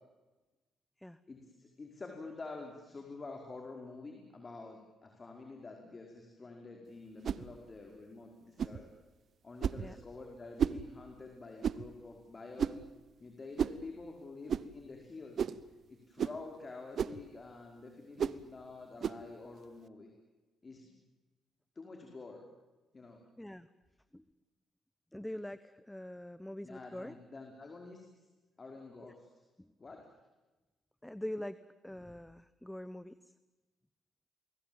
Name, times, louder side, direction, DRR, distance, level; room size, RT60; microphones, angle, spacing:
voice 1, 1.3-8.9 9.4-12.8 13.2-15.5 15.9-20.1 20.6-20.9 21.7-22.4 22.9-23.2 26.6-28.3 28.6-29.4 29.8-30.0, left 3 dB, 35° left, 2 dB, 5.0 m, -48 dB
sound 1, 7.2-7.5 8.6-8.8 9.6-9.9 10.6-10.8 11.6-11.9 12.6-12.9 13.6-13.8 14.5-14.7 15.4-15.6 16.2-16.4 17.0-17.2 18.2-18.4 19.0-19.2, right 7 dB, 60° right, 1.0 m, -33 dB
voice 2, 25.1-27.2 29.0-29.1 29.6-29.7 31.0-31.6 31.8-33.3, left 1 dB, 5° left, 15 dB, 1.1 m, -44 dB
29.5 x 21.5 x 9.0 m, 1.1 s
supercardioid pair, 55°, 0 cm